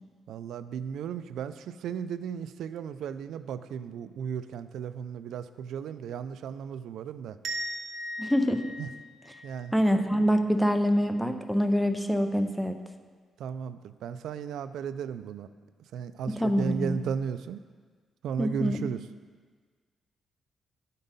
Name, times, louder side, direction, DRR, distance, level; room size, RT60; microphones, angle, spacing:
voice 1, 0.3-7.4 8.8-8.9 9.4-9.7 13.4-15.5 15.9-17.6 18.2-19.0, right 7 dB, 75° right, 12 dB, 0.3 m, -35 dB
sound 1, 7.4-10.2, equal, 50° right, 0.8 m, -38 dB
voice 2, 8.2-8.7 9.7-12.8 16.3-17.0 18.4-18.8, equal, ahead, 7 dB, 0.5 m, -25 dB
11.5 x 5.3 x 4.1 m, 1.5 s
cardioid pair, 170°, 0 cm